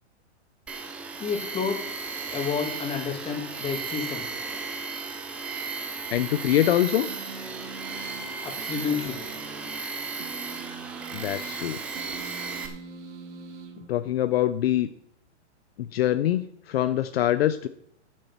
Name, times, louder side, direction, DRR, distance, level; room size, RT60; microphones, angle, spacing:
Tools, 0.7-12.7, right 4 dB, 5° right, 0.3 m, -35 dB
voice 1, 1.2-1.9 2.3-4.3 8.4-9.2, left 6 dB, 15° left, 4 dB, 2.2 m, -30 dB
voice 2, 6.1-7.1 11.1-11.8 13.9-14.9 15.8-17.7, left 12 dB, 60° left, 12 dB, 0.7 m, -24 dB
sound 1, 7.1-14.5, right 4 dB, 90° right, 2.7 m, -44 dB
11.0 x 7.6 x 5.7 m, 0.68 s
hypercardioid pair, 140°, 35 cm